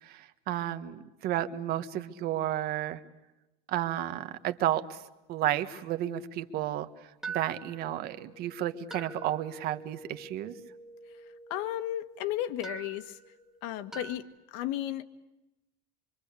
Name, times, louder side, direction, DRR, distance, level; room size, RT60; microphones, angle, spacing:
voice 1, 0.0-3.0 3.7-5.0 5.3-6.9 7.3-10.6, right 12 dB, 55° right, 10 dB, 1.6 m, -32 dB
sound 1, 4.1-5.7 6.1-6.2 7.2-14.2, right 4 dB, ahead, 1.8 m, -46 dB
voice 2, 11.5-13.2 13.6-15.0, left 12 dB, 85° left, 9 dB, 1.7 m, -34 dB
25.5 x 25.0 x 8.4 m, 0.97 s
cardioid pair, 155°, 19 cm